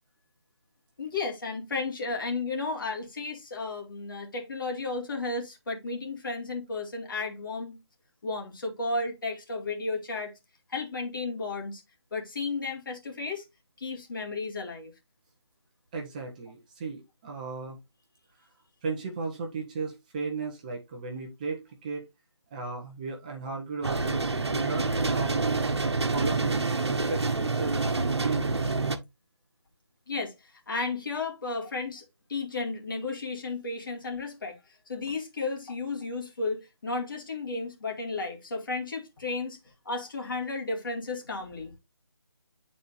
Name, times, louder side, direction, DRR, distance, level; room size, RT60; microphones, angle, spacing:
voice 1, 1.0-7.8 8.2-10.3 10.7-11.8 12.1-13.4 13.8-14.9 30.1-32.0 32.3-34.6 34.9-39.6 39.9-41.7, left 3 dB, 50° left, 2.2 m, -33 dB
voice 2, 15.9-17.8 18.8-22.0 22.5-25.7 26.1-28.7, right 4 dB, 15° right, 0.9 m, -36 dB
sound 1, 23.8-29.0, right 3 dB, 75° right, 1.1 m, -27 dB
9.9 x 4.2 x 2.5 m
figure-of-eight pair, 160°, 14 cm